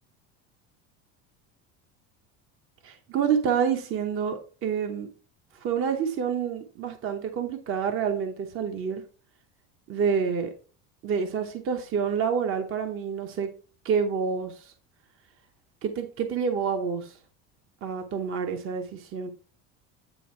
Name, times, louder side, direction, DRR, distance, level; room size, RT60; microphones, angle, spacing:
voice 1, 2.8-5.1 5.5-9.0 9.9-10.5 11.0-13.5 13.8-14.7 15.8-17.2 17.8-19.3, right 6 dB, 35° right, 6 dB, 0.9 m, -28 dB
9.2 x 3.4 x 4.3 m, 0.39 s
cardioid pair, 140°, 36 cm